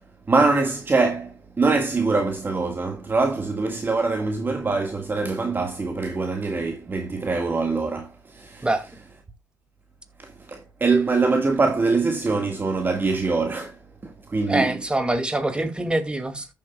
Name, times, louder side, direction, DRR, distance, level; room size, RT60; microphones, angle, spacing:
voice 1, 0.3-8.7 10.2-14.8, right 3 dB, 30° right, 1.7 m, -23 dB
voice 2, 14.5-16.5, right 2 dB, 15° right, 2.2 m, -24 dB
14.0 x 7.4 x 2.3 m
supercardioid pair, 65°, 7 cm